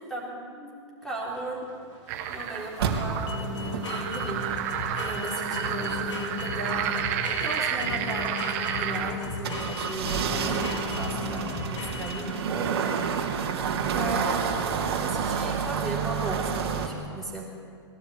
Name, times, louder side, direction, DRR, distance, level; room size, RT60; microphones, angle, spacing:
voice 1, 0.1-0.7 1.0-1.6 2.3-4.4 4.9-13.0 13.9-17.4, right 1 dB, 5° left, -4 dB, 3.6 m, -36 dB
sound 1, 1.0-12.7, left 3 dB, 80° left, 3.8 m, -36 dB
sound 2, 2.1-9.1, right 10 dB, 30° right, 1.4 m, -31 dB
sound 3, 2.8-16.9, right 6 dB, 55° right, 3.0 m, -30 dB
21.0 x 16.5 x 8.7 m, 2.2 s
hypercardioid pair, 175°, 15 cm